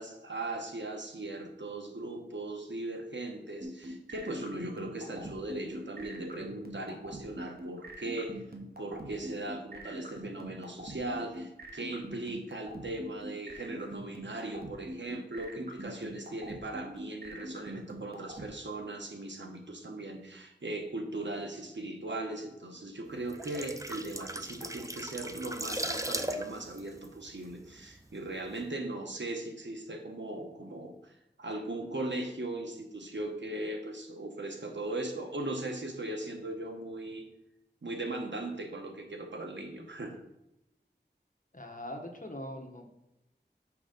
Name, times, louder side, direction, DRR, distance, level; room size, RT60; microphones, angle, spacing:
voice 1, 0.0-8.4 8.8-37.2 37.8-40.2, right 2 dB, 80° right, 3 dB, 1.1 m, -38 dB
sound 1, 3.6-18.5, right 1 dB, 55° right, 1.1 m, -43 dB
sound 2, 23.2-28.0 28.3-28.5, right 1 dB, 15° right, 0.5 m, -38 dB
voice 2, 41.5-42.9, left 1 dB, 45° left, 3 dB, 1.2 m, -42 dB
6.1 x 5.1 x 5.2 m, 0.89 s
wide cardioid pair, 50°, 19 cm